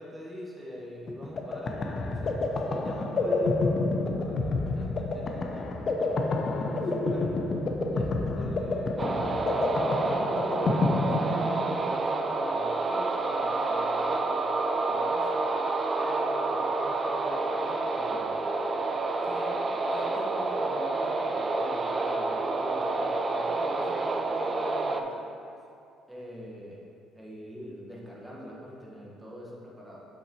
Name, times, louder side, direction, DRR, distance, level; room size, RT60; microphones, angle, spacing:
voice 1, 0.0-6.2 6.7-7.3 7.9-14.5 14.8-15.4 16.0-18.5 19.2-25.3 26.1-26.8 27.1-30.1, equal, 5° right, -4 dB, 1.4 m, -44 dB
sound 1, 1.1-11.9, left 2 dB, 40° left, 0.5 m, -29 dB
sound 2, 9.0-25.0, right 3 dB, 25° right, 0.4 m, -28 dB
7.5 x 5.7 x 3.0 m, 2.5 s
cardioid pair, 120°, 0 cm